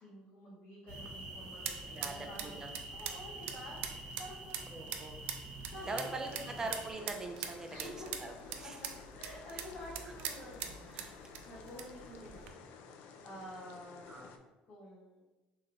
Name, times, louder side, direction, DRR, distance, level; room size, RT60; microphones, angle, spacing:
voice 1, 0.0-2.5 2.9-4.8 5.7-6.6 7.7-8.1 8.6-8.9 9.1-10.7 11.0-12.6 12.9-14.3 14.7-15.2, left 1 dB, 65° left, -7 dB, 0.9 m, -50 dB
sound 1, 0.9-6.9, right 2 dB, 70° right, 1.1 m, -47 dB
sound 2, 0.9-12.5, right 8 dB, 90° right, 0.3 m, -44 dB
voice 2, 1.9-2.7 4.7-5.2 5.8-7.9 8.2-8.8 10.9-11.2 14.1-14.3, right 2 dB, 20° right, 4 dB, 0.4 m, -42 dB
sound 3, 5.7-14.4, left 5 dB, 85° left, 0.3 m, -53 dB
3.2 x 3.1 x 2.4 m, 1.1 s
cardioid pair, 135°, 3 cm